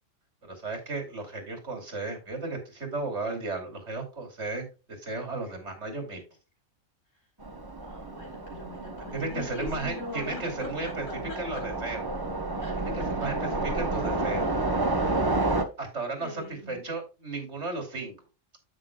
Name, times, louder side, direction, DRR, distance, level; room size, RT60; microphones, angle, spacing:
voice 1, 0.4-4.7 5.0-6.2 9.1-12.0 12.8-14.4 15.8-18.1, right 3 dB, 65° right, 3.1 m, -34 dB
Train, 7.4-15.6, right 2 dB, 20° right, 0.9 m, -30 dB
voice 2, 7.8-10.7 11.1-11.6 12.6-12.7 13.2-13.3 14.2-14.5 14.8-14.9 15.2-15.5 16.2-16.8, left 3 dB, 90° left, 4.4 m, -42 dB
9.9 x 8.1 x 2.3 m
omnidirectional pair, 1.3 m